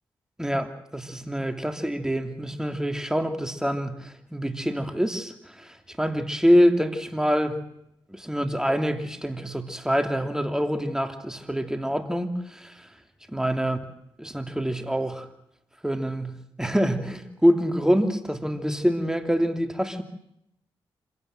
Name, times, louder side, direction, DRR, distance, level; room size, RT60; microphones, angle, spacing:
voice 1, 0.4-7.6 8.1-12.9 13.3-13.8 14.2-15.3 15.8-20.0, equal, 5° right, 6 dB, 3.0 m, -25 dB
26.5 x 17.0 x 7.7 m, 0.79 s
supercardioid pair, 45°, 10 cm